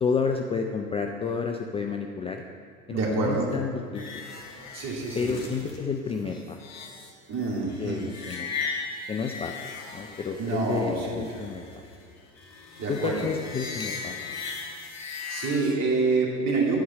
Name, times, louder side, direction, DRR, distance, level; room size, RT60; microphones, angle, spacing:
voice 1, 0.0-2.4 2.9-4.2 5.1-6.6 7.5-8.5 9.1-9.6 9.9-11.6 12.9-14.2, left 5 dB, 15° left, 4 dB, 0.4 m, -30 dB
voice 2, 2.9-3.5 4.7-5.3 7.3-8.0 10.4-11.4 12.8-13.3 14.9-16.8, right 3 dB, 40° right, -2 dB, 2.6 m, -27 dB
sound 1, 3.9-15.7, left 5 dB, 40° left, 1.9 m, -38 dB
10.5 x 4.7 x 7.3 m, 2.4 s
hypercardioid pair, 75°, 40 cm